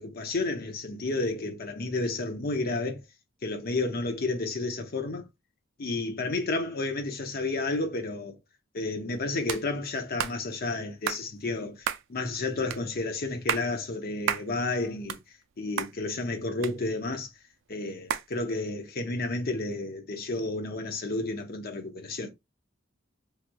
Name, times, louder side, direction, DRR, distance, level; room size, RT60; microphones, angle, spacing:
voice 1, 0.0-3.0 3.4-5.2 5.8-8.4 8.7-15.2 15.6-17.3 17.7-22.3, left 2 dB, 50° left, 0.7 m, -31 dB
sound 1, 9.5-9.6 10.2-10.4 11.1-11.2 11.8-12.1 12.7-12.8 13.3-13.7 14.3-14.5 14.9-15.5 15.8-15.9 16.6-17.2 18.1-18.3, right 8 dB, 65° right, 0.3 m, -31 dB
3.2 x 2.9 x 2.2 m
head